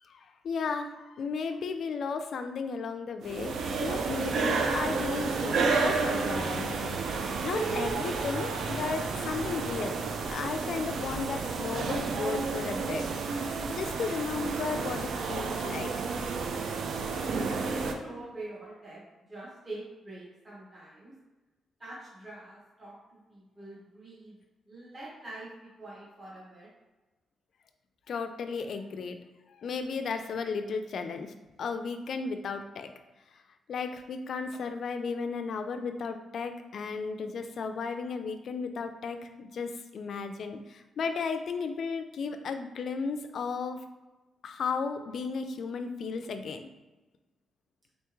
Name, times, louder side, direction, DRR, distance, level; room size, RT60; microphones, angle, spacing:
voice 1, 0.0-15.9 28.1-29.2 29.5-31.3 31.6-32.9 33.7-43.8 44.4-46.7, left 5 dB, 50° left, 7 dB, 0.4 m, -34 dB
sound 1, 3.2-17.9, right 4 dB, 60° right, 0.5 m, -31 dB
voice 2, 17.1-21.2 21.8-24.4 24.6-26.7, right 2 dB, 25° right, -8 dB, 1.4 m, -44 dB
4.0 x 3.4 x 3.0 m, 1.2 s
wide cardioid pair, 160°, 0 cm